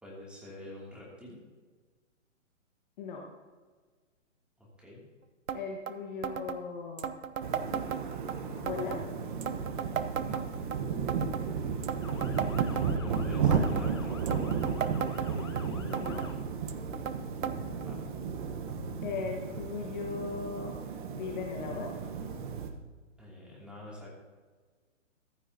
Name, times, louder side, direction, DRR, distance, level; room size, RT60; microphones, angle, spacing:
voice 1, 0.0-1.4 4.6-5.0 10.2-10.4 12.3-14.5 17.7-18.0 23.2-24.2, left 1 dB, 5° right, -5 dB, 2.6 m, -47 dB
voice 2, 5.5-7.1 8.6-9.0 15.8-16.2 19.0-20.8 21.1-22.0, left 5 dB, 40° left, 0 dB, 1.5 m, -38 dB
sound 1, 5.5-5.6 5.9-6.0 6.2-6.6 7.0-8.3 8.7-9.0 9.4-10.8 11.1-11.5 11.8-13.2 13.5-13.9 14.3-15.6 15.9-16.3 16.7-17.2 17.4-17.6 17.8-17.9 18.7-18.8 19.6-19.7, right 8 dB, 80° right, 0.9 m, -35 dB
sound 2, 7.4-22.7, right 6 dB, 40° right, 1.2 m, -33 dB
Motor vehicle (road) / Siren, 12.0-16.3, left 5 dB, 20° left, 0.4 m, -49 dB
15.0 x 12.0 x 2.8 m, 1.4 s
hypercardioid pair, 150°, 39 cm